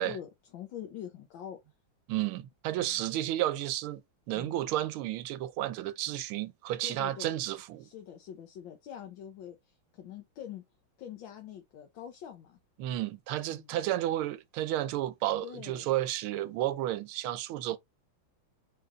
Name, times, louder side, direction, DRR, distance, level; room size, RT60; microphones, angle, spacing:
voice 1, 0.0-1.6 2.8-3.0 4.3-4.6 6.8-7.4 7.8-10.6 11.0-12.6 13.5-13.8 15.4-15.9 17.7-17.8, left 9 dB, 70° left, 1.6 m, -45 dB
voice 2, 2.1-4.0 4.3-7.9 12.8-17.8, right 14 dB, 90° right, 1.5 m, -32 dB
4.7 x 4.5 x 2.4 m
omnidirectional pair, 2.3 m